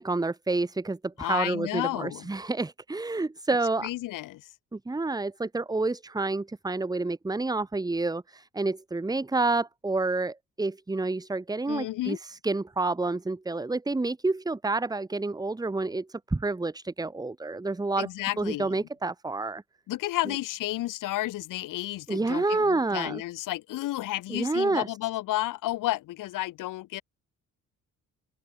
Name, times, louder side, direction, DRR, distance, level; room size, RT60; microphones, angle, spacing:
voice 1, 0.0-3.9 4.7-18.1 18.4-19.6 22.1-23.2 24.3-24.9, right 3 dB, 10° right, 2.6 m, -29 dB
voice 2, 1.2-2.3 3.8-4.5 11.7-12.2 18.0-18.8 19.9-27.0, left 16 dB, 85° left, 2.2 m, -32 dB
cardioid pair, 135°, 31 cm